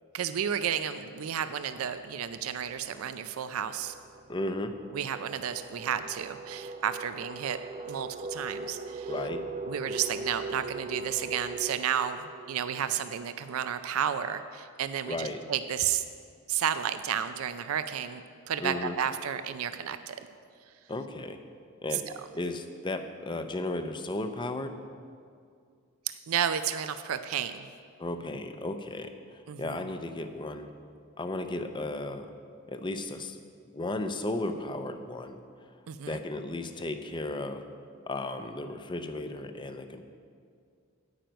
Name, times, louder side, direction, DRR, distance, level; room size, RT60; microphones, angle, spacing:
voice 1, 0.1-3.9 4.9-7.6 7.8-9.1 9.6-16.0 16.5-20.2 21.9-22.0 26.1-27.7 29.5-29.9 35.9-36.2, right 9 dB, 90° right, 11 dB, 0.4 m, -32 dB
sound 1, 2.4-13.8, right 3 dB, 35° right, 0.5 m, -41 dB
voice 2, 4.3-4.7 9.1-9.4 15.1-15.4 18.6-19.0 20.9-21.4 21.8-22.0 22.4-24.7 28.0-29.1 29.6-30.7 31.2-32.3 32.7-33.4 33.7-35.4 36.1-37.6 38.0-40.0, left 2 dB, 25° left, 8 dB, 0.5 m, -34 dB
9.1 x 8.9 x 5.2 m, 2.2 s
head